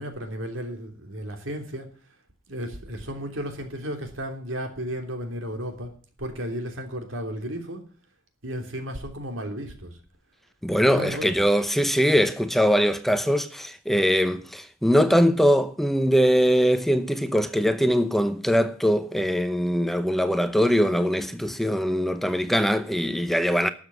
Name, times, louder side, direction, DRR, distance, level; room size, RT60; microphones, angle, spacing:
voice 1, 0.0-1.9 2.5-5.9 6.2-7.8 8.4-10.0 10.8-11.4, equal, 90° right, 3.1 m, -33 dB
voice 2, 10.6-23.7, equal, ahead, 0.7 m, -22 dB
12.5 x 7.3 x 9.2 m
head